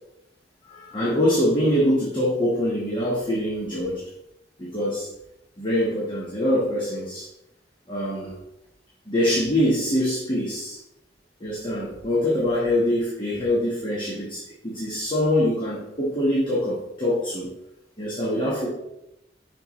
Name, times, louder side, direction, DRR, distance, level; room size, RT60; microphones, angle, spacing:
voice 1, 0.7-4.0 4.6-5.1 5.6-7.3 7.9-8.3 9.1-10.8 11.4-17.5 18.0-18.7, left 1 dB, 30° left, -6 dB, 1.3 m, -24 dB
6.6 x 5.4 x 3.1 m, 0.88 s
head